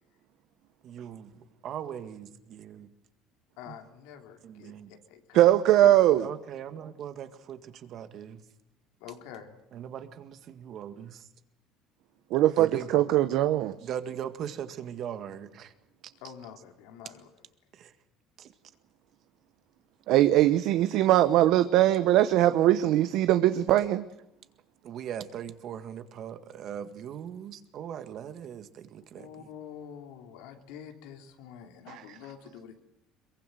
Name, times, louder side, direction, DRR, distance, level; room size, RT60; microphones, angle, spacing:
voice 1, 0.8-2.9 3.7-3.8 4.4-4.9 6.2-8.4 9.7-11.2 12.6-12.9 13.9-15.7 16.0-16.1 17.7-17.9 18.4-18.5 24.8-29.3, right 9 dB, 50° right, 1.9 m, -39 dB
voice 2, 3.6-5.4 5.8-5.9 9.0-9.6 12.9-13.2 16.2-17.4 29.1-32.8, left 9 dB, 85° left, 3.0 m, -46 dB
voice 3, 5.3-6.2 12.3-13.7 20.1-24.0 31.9-32.0, right 13 dB, 65° right, 0.9 m, -21 dB
23.0 x 22.5 x 7.9 m
cardioid pair, 130°, 0 cm